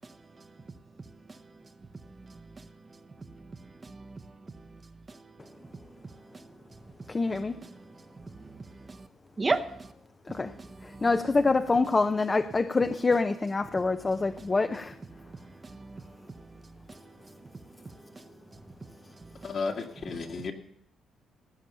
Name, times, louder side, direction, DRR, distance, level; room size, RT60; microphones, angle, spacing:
voice 1, 0.0-0.5 1.3-1.4 2.0-3.0 3.3-4.8 5.1-5.5 6.3-6.5 7.7-7.9 8.2-9.1 9.4-9.9 10.4-11.1 15.1-16.6 16.9-17.3 18.1-18.2 19.2-19.6 20.2-20.4, right 3 dB, 30° right, 0.9 m, -38 dB
voice 2, 7.1-7.6 10.3-10.5 11.0-14.9, left 3 dB, 25° left, 0.7 m, -26 dB
voice 3, 19.4-20.5, left 4 dB, 55° left, 1.9 m, -33 dB
16.5 x 8.9 x 6.8 m
cardioid pair, 90°, 0 cm